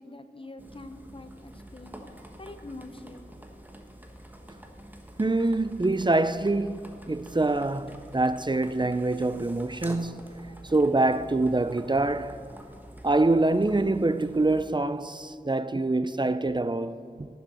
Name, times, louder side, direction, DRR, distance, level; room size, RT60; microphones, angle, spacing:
voice 1, 0.0-2.1 2.4-3.3 10.5-10.7, left 2 dB, 30° left, 0.8 m, -45 dB
sound 1, 0.6-14.6, right 1 dB, 10° right, 1.3 m, -47 dB
voice 2, 5.2-12.4 13.0-17.3, right 2 dB, 25° right, 0.5 m, -25 dB
14.0 x 7.1 x 6.3 m
wide cardioid pair, 45°, 17 cm